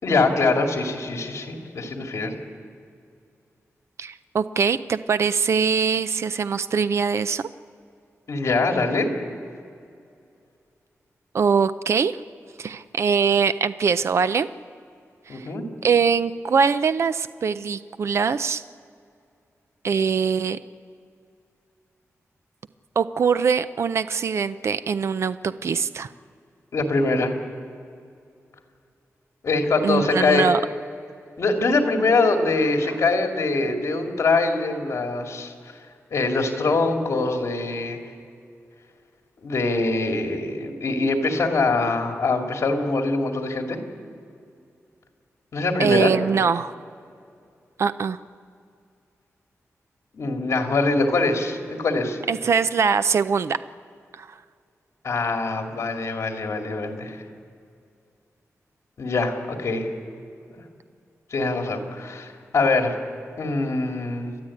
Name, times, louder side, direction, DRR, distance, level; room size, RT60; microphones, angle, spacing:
voice 1, 0.0-2.3 8.3-9.1 15.3-15.6 26.7-27.3 29.4-30.5 31.4-35.5 36.1-38.0 39.4-43.8 45.5-46.1 50.1-52.2 55.0-57.2 59.0-59.9 60.5-60.6 61.3-62.9 63.4-64.3, left 3 dB, 60° left, 3 dB, 2.5 m, -23 dB
voice 2, 4.0-7.5 11.3-12.2 12.6-14.5 15.3-15.5 15.8-18.6 19.8-20.6 23.0-26.1 29.8-30.6 45.8-46.7 47.8-48.2 52.3-53.6 54.1-54.3, right 6 dB, 55° right, 13 dB, 0.5 m, -22 dB
29.5 x 12.0 x 8.6 m, 2.4 s
wide cardioid pair, 175°, 5 cm